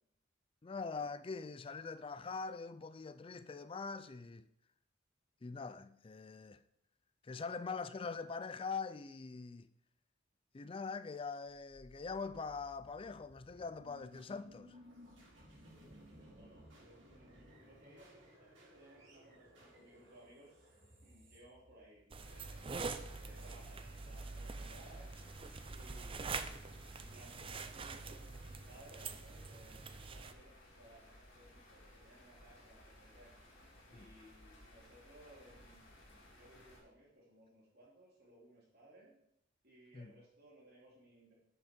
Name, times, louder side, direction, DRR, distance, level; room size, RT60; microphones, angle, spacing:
voice 1, 0.6-4.5 5.4-6.6 7.2-9.7 10.5-14.8 33.9-34.1 39.9-40.1, left 4 dB, 30° left, 0.4 m, -43 dB
sound 1, 11.7-22.5, equal, 70° right, 3.4 m, -60 dB
voice 2, 15.7-20.7 21.0-22.7 23.2-25.1 25.7-33.3 33.9-35.9 36.3-39.1 39.6-41.3, right 1 dB, 55° right, 2.8 m, -61 dB
sound 2, 22.1-30.3, right 4 dB, 30° right, 0.5 m, -45 dB
sound 3, 22.2-36.8, left 1 dB, 75° left, 3.2 m, -60 dB
11.0 x 6.1 x 4.4 m
head